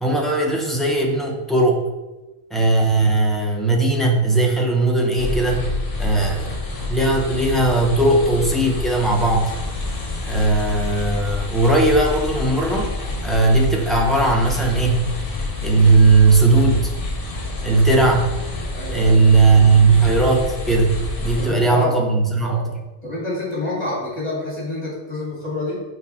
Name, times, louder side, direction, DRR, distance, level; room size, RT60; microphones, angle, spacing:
voice 1, 0.0-1.8 2.5-5.7 6.0-6.5 6.9-9.5 10.3-12.9 13.2-15.0 15.6-16.9 17.6-18.3 18.9-22.7, right 3 dB, ahead, -2 dB, 0.8 m, -17 dB
sound 1, 5.2-21.5, left 3 dB, 55° left, 1.3 m, -28 dB
voice 2, 18.7-19.1 21.4-22.0 22.4-22.7 23.0-25.8, left 2 dB, 35° left, -5 dB, 2.6 m, -27 dB
6.4 x 4.6 x 4.3 m, 1.1 s
omnidirectional pair, 1.2 m